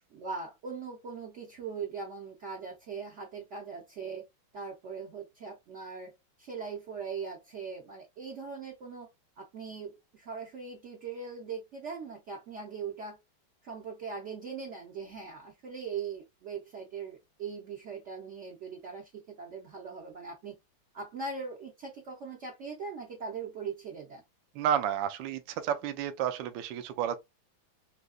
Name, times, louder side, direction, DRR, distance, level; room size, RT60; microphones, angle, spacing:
voice 1, 0.1-4.3 4.5-9.1 9.4-13.2 13.6-20.6 20.9-24.2, right 5 dB, 60° right, 0.7 m, -40 dB
voice 2, 24.6-27.2, right 9 dB, 75° right, 1.2 m, -31 dB
3.9 x 2.8 x 2.2 m
omnidirectional pair, 2.2 m